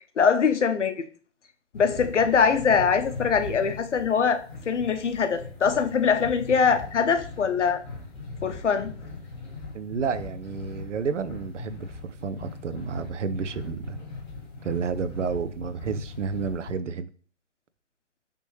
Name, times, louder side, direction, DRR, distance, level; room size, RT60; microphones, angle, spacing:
voice 1, 0.2-0.9 1.7-4.4 4.7-7.8 8.4-8.9, left 6 dB, 75° left, 0.6 m, -22 dB
sound 1, 1.7-16.7, left 3 dB, 25° left, 1.3 m, -40 dB
voice 2, 9.7-14.0 14.6-17.1, right 6 dB, 80° right, 0.5 m, -31 dB
3.3 x 2.9 x 3.1 m
figure-of-eight pair, 135°, 36 cm